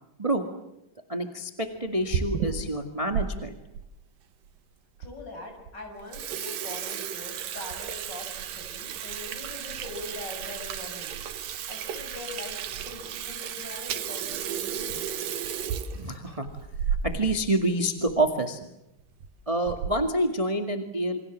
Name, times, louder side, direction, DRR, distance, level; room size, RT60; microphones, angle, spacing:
voice 1, 1.1-3.6 15.9-16.5 16.9-18.6 19.5-21.2, right 1 dB, 15° right, 5 dB, 1.4 m, -27 dB
Water tap faucet / Sink (filling or washing), 1.8-3.3 3.7-3.8 4.6-4.7 5.0-5.1 5.5-5.7 6.0-17.4 17.7-17.8 18.1-18.2 19.0-19.3 19.7-20.1, right 8 dB, 90° right, 3.2 m, -33 dB
voice 2, 5.0-11.2 11.7-15.0, left 2 dB, 30° left, 4 dB, 7.3 m, -42 dB
28.5 x 25.5 x 7.5 m, 0.86 s
omnidirectional pair, 3.8 m